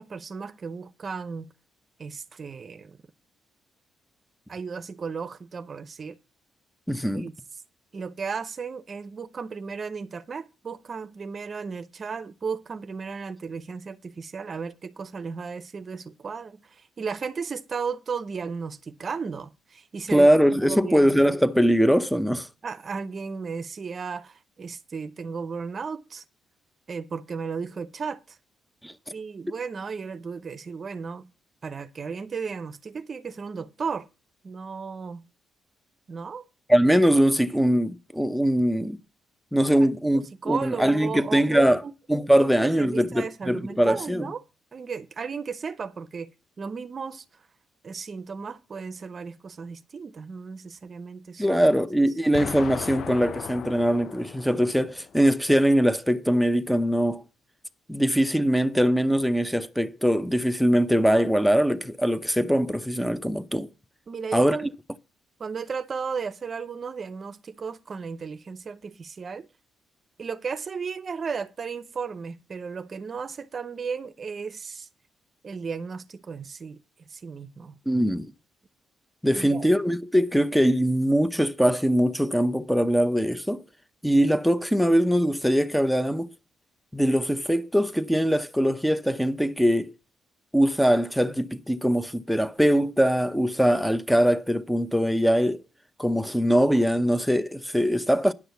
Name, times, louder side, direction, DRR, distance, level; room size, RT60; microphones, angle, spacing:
voice 1, 0.0-1.5 2.0-3.0 4.5-6.2 7.1-7.3 7.9-20.3 20.7-21.1 22.6-26.2 26.9-28.4 29.1-31.3 31.6-34.1 34.4-35.3 36.1-36.4 39.8-41.9 42.4-44.4 44.7-46.3 46.6-47.2 47.8-51.8 64.1-64.7 65.4-69.5 70.2-74.9 75.4-77.8 79.3-79.7, right 5 dB, 40° right, 0.7 m, -35 dB
voice 2, 6.9-7.3 20.1-22.5 28.8-28.9 36.7-39.0 39.5-41.8 42.1-44.3 51.4-57.2 57.9-63.7 64.3-64.6 77.9-78.3 79.2-83.6 84.0-86.3 86.9-89.9 90.5-95.6 96.0-98.3, equal, ahead, 0.7 m, -22 dB
Explosion, 52.3-55.3, left 8 dB, 60° left, 0.5 m, -37 dB
10.0 x 6.2 x 6.9 m
cardioid pair, 90°, 0 cm